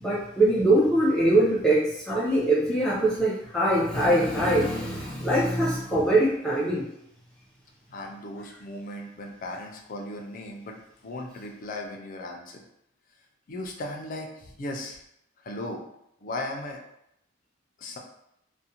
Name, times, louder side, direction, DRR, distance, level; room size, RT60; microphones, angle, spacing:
voice 1, 0.0-6.9, right 1 dB, 5° left, -7 dB, 0.7 m, -23 dB
voice 2, 7.9-10.8 11.0-12.6 13.5-15.0 15.4-15.8 16.2-16.8 17.8-18.0, left 1 dB, 45° left, 1 dB, 0.4 m, -36 dB
2.5 x 2.1 x 2.8 m, 0.78 s
head